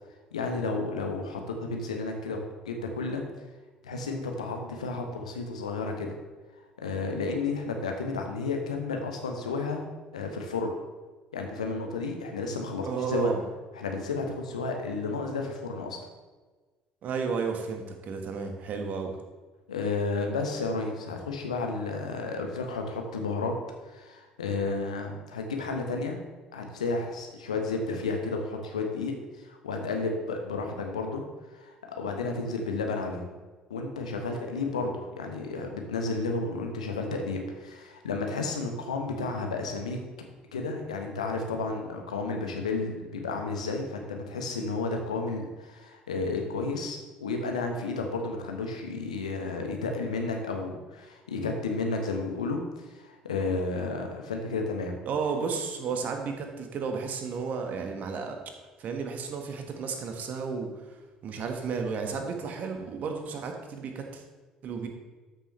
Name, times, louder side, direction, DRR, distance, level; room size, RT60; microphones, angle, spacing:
voice 1, 0.3-2.4 2.6-3.2 3.8-6.2 6.8-9.8 10.1-10.7 11.3-13.3 13.7-16.0 19.7-23.5 23.9-26.2 26.5-31.2 31.5-33.3 33.7-40.0 40.5-54.9, left 3 dB, 80° left, 3 dB, 1.2 m, -32 dB
voice 2, 12.8-13.4 17.0-19.2 55.0-58.4 58.8-60.7 61.2-64.2 64.6-64.9, right 5 dB, 50° right, 4 dB, 1.5 m, -32 dB
13.0 x 6.8 x 3.2 m, 1.3 s
figure-of-eight pair, 55°, 4 cm